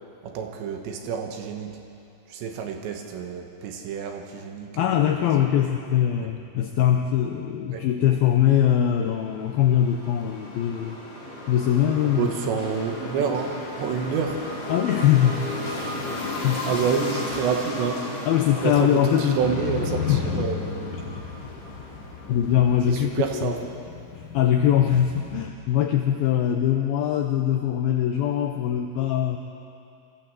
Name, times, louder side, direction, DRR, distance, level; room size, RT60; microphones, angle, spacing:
voice 1, 0.2-1.8 2.3-5.1 5.4-5.5 7.7-7.8 12.2-14.4 16.7-18.0 18.6-20.7 22.9-23.6, right 6 dB, 75° right, 3 dB, 3.5 m, -28 dB
voice 2, 4.7-11.0 11.5-12.3 14.7-15.5 16.1-16.8 18.3-19.4 20.1-20.2 22.3-23.5 24.1-29.4, left 10 dB, 85° left, 4 dB, 2.1 m, -22 dB
sound 1, 8.8-23.1, left 1 dB, 50° left, 5.3 m, -35 dB
Motorcycle, 19.4-25.5, left 5 dB, 70° left, 1.2 m, -34 dB
23.5 x 15.0 x 7.7 m, 2.6 s
omnidirectional pair, 5.4 m